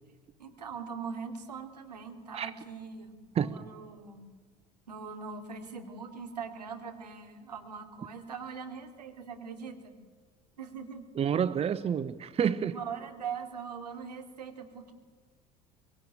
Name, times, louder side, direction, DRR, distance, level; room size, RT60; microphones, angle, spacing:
voice 1, 0.4-4.2 4.9-9.9 10.6-11.0 12.6-14.9, right 6 dB, 80° right, 4 dB, 3.0 m, -41 dB
voice 2, 11.1-12.8, right 8 dB, 30° right, 15 dB, 0.9 m, -29 dB
24.5 x 22.5 x 9.1 m, 1.5 s
figure-of-eight pair, 60°, 20 cm